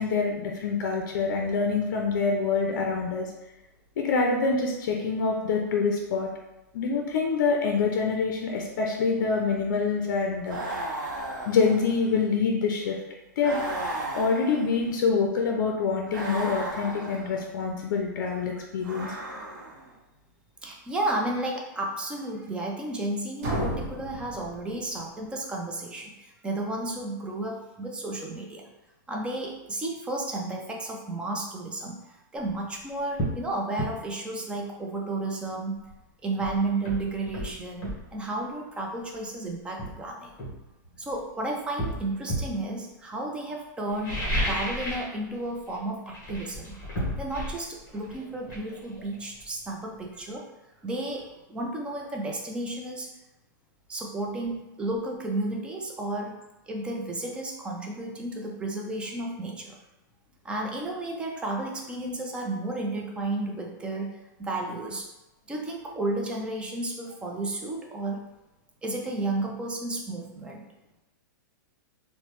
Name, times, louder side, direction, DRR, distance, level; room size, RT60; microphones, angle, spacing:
voice 1, 0.0-3.3 4.0-6.3 6.7-10.9 11.5-13.0 13.4-13.6 14.1-19.1, left 4 dB, 65° left, 1 dB, 0.4 m, -26 dB
sound 1, 10.5-12.2 13.4-15.0 16.1-17.4 18.8-19.9, right 2 dB, 80° right, 0.7 m, -35 dB
voice 2, 19.1-19.6 20.6-28.6 29.1-35.9 36.2-40.3 41.0-46.8 47.2-50.4 50.8-53.1 53.9-56.4 56.7-59.8 60.4-65.1 65.5-68.2 68.8-70.6, right 2 dB, 10° right, 0 dB, 0.3 m, -32 dB
sound 2, 23.4-25.3, equal, 50° right, 0.8 m, -33 dB
sound 3, 32.5-32.6 33.2-33.4 33.8-34.0 35.9-36.0 36.4-38.1 39.1-39.3 39.8-41.2 41.8-42.6 43.9-45.2 45.4-45.8 46.1-49.7 50.0-50.1, equal, 25° left, 0.9 m, -32 dB
3.0 x 2.0 x 2.9 m, 0.97 s
hypercardioid pair, 150°, 11 cm